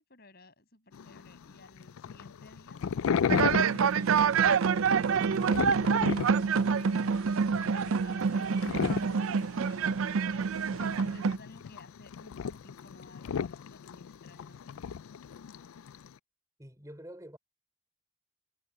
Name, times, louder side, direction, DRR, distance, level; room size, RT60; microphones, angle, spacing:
voice 1, 0.0-5.8 6.8-14.9, left 2 dB, 50° left, 7.6 m, -56 dB
sound 1, 0.9-16.1, left 7 dB, 85° left, 0.4 m, -35 dB
sound 2, 3.3-11.4, right 6 dB, 80° right, 0.4 m, -27 dB
voice 2, 16.6-17.4, equal, 15° right, 4.5 m, -46 dB
head